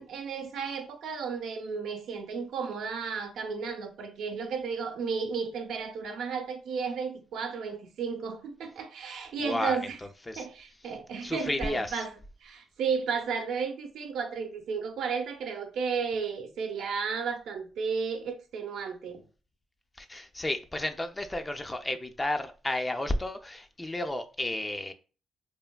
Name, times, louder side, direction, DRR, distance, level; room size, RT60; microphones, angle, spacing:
voice 1, 0.0-10.0 10.4-12.1 12.4-19.2, right 5 dB, 75° right, 0.5 m, -33 dB
voice 2, 9.4-9.8 10.3-10.5 11.2-12.0 20.0-24.9, left 1 dB, 15° left, 0.3 m, -32 dB
3.2 x 2.0 x 2.2 m
cardioid pair, 90°, 0 cm